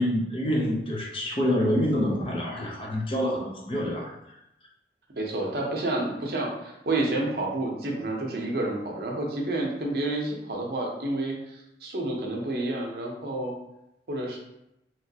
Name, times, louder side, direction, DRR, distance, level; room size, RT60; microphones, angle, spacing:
voice 1, 0.0-4.4, equal, 30° left, -2 dB, 0.5 m, -27 dB
voice 2, 5.2-13.5 14.1-14.4, right 2 dB, 60° right, -1 dB, 0.7 m, -29 dB
3.0 x 3.0 x 2.8 m, 0.85 s
head